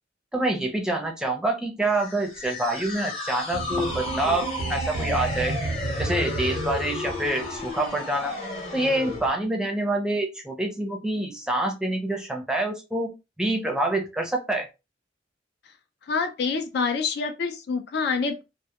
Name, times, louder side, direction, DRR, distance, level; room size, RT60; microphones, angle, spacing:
voice 1, 0.3-5.6 6.0-8.3 8.7-14.7, right 1 dB, 5° right, 0.5 m, -26 dB
sound 1, 1.9-9.3, left 2 dB, 30° left, 0.8 m, -33 dB
sound 2, 3.5-7.8, right 2 dB, 85° right, 0.6 m, -32 dB
voice 2, 16.1-18.4, left 5 dB, 60° left, 0.4 m, -26 dB
2.2 x 2.1 x 2.8 m
head